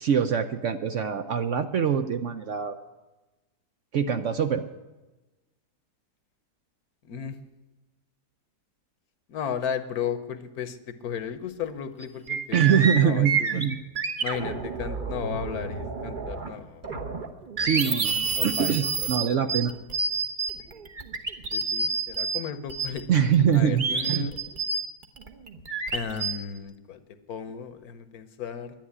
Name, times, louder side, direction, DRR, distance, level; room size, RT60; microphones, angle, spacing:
voice 1, 0.0-2.8 3.9-4.6 12.5-13.8 17.6-19.7 23.1-24.3, right 8 dB, 65° right, 8 dB, 0.8 m, -24 dB
voice 2, 7.0-7.4 9.3-13.6 14.2-16.9 18.3-19.1 21.5-23.1 23.5-24.3 25.9-27.0 27.3-28.7, left 7 dB, 70° left, 11 dB, 1.3 m, -35 dB
sound 1, 11.6-11.7 12.0-16.6 16.8-22.4 22.7-26.3, right 4 dB, 35° right, 1.1 m, -29 dB
11.0 x 10.5 x 9.8 m, 1.1 s
omnidirectional pair, 1.7 m